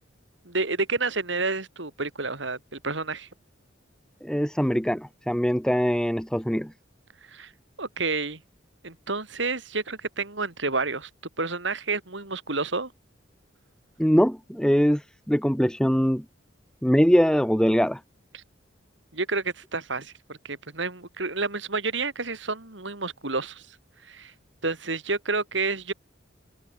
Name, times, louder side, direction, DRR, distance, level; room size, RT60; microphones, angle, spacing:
voice 1, 0.4-3.3 7.3-7.5 7.8-8.4 8.8-11.1 11.4-12.9 18.3-18.4 19.1-23.8 24.0-24.3 24.6-25.9, right 3 dB, 65° right, 3.7 m, -30 dB
voice 2, 4.2-6.7 14.0-16.2 16.8-18.0, equal, 5° left, 2.6 m, -22 dB
head